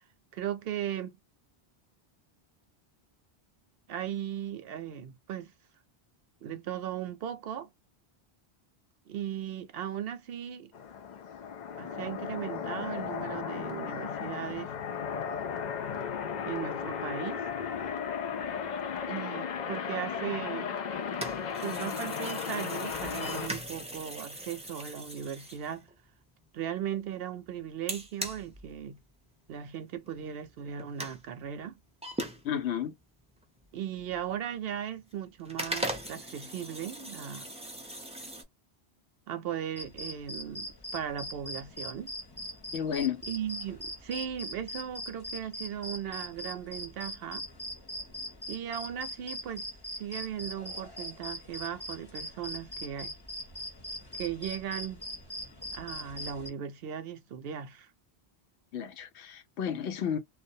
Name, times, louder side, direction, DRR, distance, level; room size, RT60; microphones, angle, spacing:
voice 1, 0.3-1.2 3.9-5.5 6.4-7.7 9.1-10.7 11.8-14.7 16.4-17.4 19.1-20.8 21.6-25.9 26.5-29.0 29.5-31.8 33.7-37.5 39.3-42.1 43.3-47.4 48.5-49.7 50.0-53.1 54.1-55.0 55.7-57.9, right 9 dB, 70° right, 0.7 m, -37 dB
sound 1, 10.7-23.5, left 7 dB, 55° left, 0.5 m, -35 dB
sound 2, 20.9-26.3 27.9-29.3 29.6-29.7 30.1-30.2 30.5-31.2 32.0-33.0 33.4-34.6 35.0-35.1 35.4-38.4, right 1 dB, 10° right, 0.3 m, -39 dB
voice 2, 32.4-32.9 42.7-43.2 58.7-60.2, left 8 dB, 85° left, 0.9 m, -32 dB
sound 3, 39.8-56.5, left 1 dB, 25° left, 0.8 m, -41 dB
2.2 x 2.1 x 2.6 m
omnidirectional pair, 1.1 m